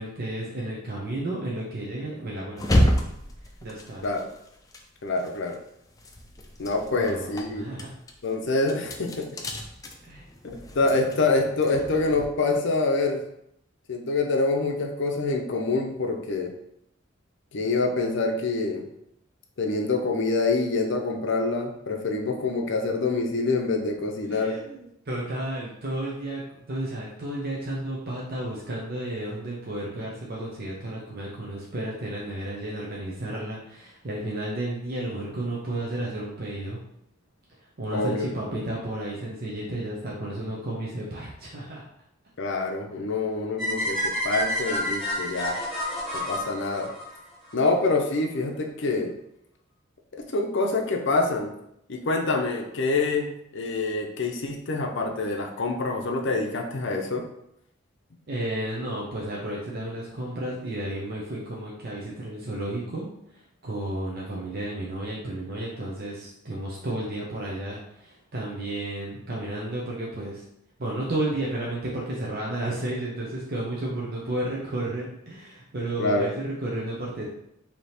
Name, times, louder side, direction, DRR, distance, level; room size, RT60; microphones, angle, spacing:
voice 1, 0.0-3.0 3.6-4.1 6.9-8.0 10.1-10.2 24.3-26.4 26.7-36.8 37.8-41.8 58.3-63.1 63.3-70.4 70.8-77.3, right 1 dB, 50° right, -4 dB, 0.7 m, -32 dB
sound 1, 2.6-5.6 5.9-12.3, equal, 20° left, 0.4 m, -30 dB
voice 2, 5.0-5.6 6.6-7.7 8.2-9.3 10.4-13.2 13.9-16.5 17.5-18.9 19.6-24.6 37.9-38.3 42.4-45.6 46.1-46.9 47.5-49.1 50.2-51.5 51.9-57.2 76.0-76.3, left 3 dB, 65° left, 3 dB, 0.6 m, -26 dB
sound 2, 43.6-47.7, left 1 dB, ahead, 1.3 m, -29 dB
3.4 x 2.9 x 4.2 m, 0.77 s
head